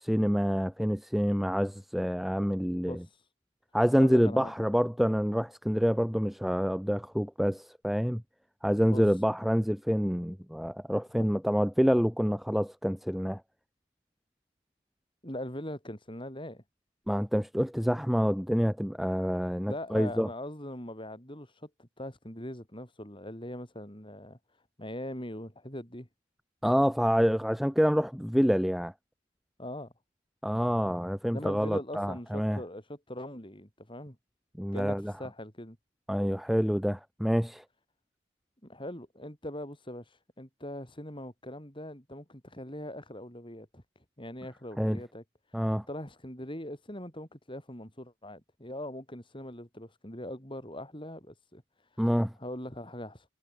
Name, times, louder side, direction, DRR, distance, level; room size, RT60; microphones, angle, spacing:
voice 1, 0.0-3.0 3.7-8.2 8.6-13.4 17.1-20.3 26.6-28.9 30.4-32.6 34.6-35.1 36.1-37.6 44.8-45.0 45.5-45.8 52.0-52.3, equal, ahead, 0.7 m, -27 dB
voice 2, 4.0-4.5 8.8-9.0 11.2-11.3 15.2-16.6 19.6-24.4 24.8-26.1 29.6-29.9 31.3-34.2 34.7-35.8 38.6-43.8 44.2-45.2 45.9-51.6 52.4-53.3, left 1 dB, 25° left, 6.2 m, -41 dB
head